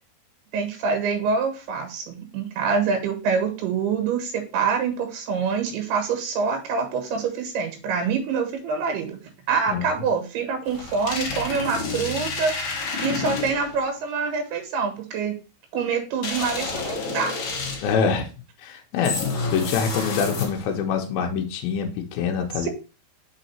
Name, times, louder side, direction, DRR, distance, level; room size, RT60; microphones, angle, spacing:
voice 1, 0.5-9.2 9.5-12.5 13.0-15.3 15.7-17.3 22.6-22.7, right 5 dB, 80° right, 5 dB, 3.4 m, -25 dB
sound 1, 10.7-13.8 16.2-18.0 19.0-20.8, left 4 dB, 60° left, 1.4 m, -29 dB
voice 2, 17.8-18.3 18.6-19.2 19.5-22.7, left 6 dB, 80° left, 2 dB, 2.5 m, -25 dB
6.2 x 4.0 x 4.3 m, 0.33 s
omnidirectional pair, 4.6 m